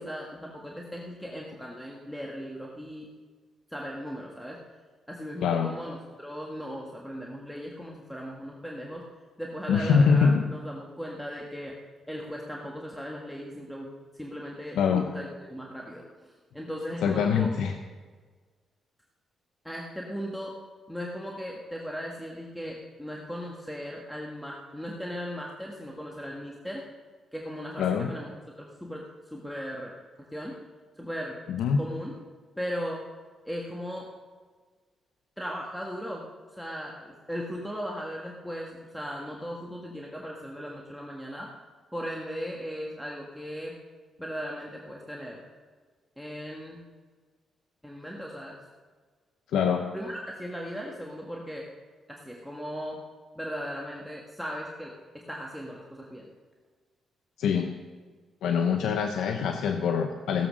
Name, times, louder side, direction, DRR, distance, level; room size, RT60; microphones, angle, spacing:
voice 1, 0.0-3.1 3.7-4.6 5.1-9.0 9.4-11.8 12.1-17.5 19.6-20.6 20.9-26.8 27.3-28.3 28.6-30.6 31.0-31.4 31.8-32.1 32.6-33.0 33.4-34.1 35.4-36.2 36.6-41.5 41.9-43.8 44.2-45.4 46.2-46.9 47.8-48.6 49.9-51.7 52.1-53.0 53.3-56.3, equal, 5° left, -1 dB, 1.6 m, -37 dB
voice 2, 9.7-10.5 14.7-15.1 17.0-17.8 27.8-28.1 31.5-31.8 49.5-49.8 57.4-57.7 58.4-60.5, left 6 dB, 85° left, 6 dB, 0.8 m, -24 dB
16.5 x 7.9 x 6.3 m, 1.5 s
cardioid pair, 90°, 0 cm